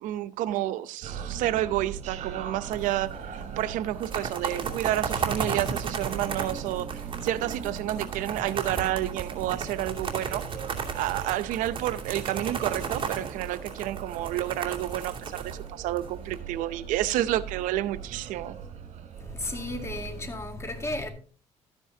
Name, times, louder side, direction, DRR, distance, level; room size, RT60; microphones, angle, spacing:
voice 1, 0.0-10.4 10.9-18.6, right 14 dB, 85° right, 0.7 m, -30 dB
sound 1, 1.0-20.3, right 7 dB, 60° right, 3.0 m, -40 dB
sound 2, 2.7-3.2 3.4-3.5 3.9-16.3, right 6 dB, 40° right, 2.5 m, -34 dB
voice 2, 19.1-21.1, left 1 dB, 20° left, 2.2 m, -34 dB
13.0 x 9.8 x 2.8 m
cardioid pair, 95°, 13 cm